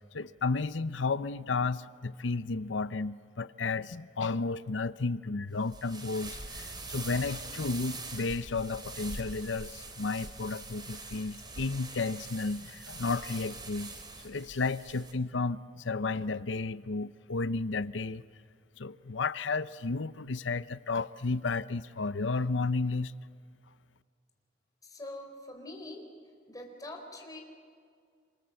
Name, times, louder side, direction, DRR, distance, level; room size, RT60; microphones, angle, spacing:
voice 1, 0.1-13.9 14.2-18.2 18.8-23.1, left 3 dB, 75° left, 0.8 m, -32 dB
sound 1, 5.6-15.1, right 3 dB, 25° right, 2.9 m, -43 dB
voice 2, 24.8-26.0 26.5-27.4, left 1 dB, 20° left, 4.6 m, -44 dB
28.0 x 26.5 x 7.9 m
head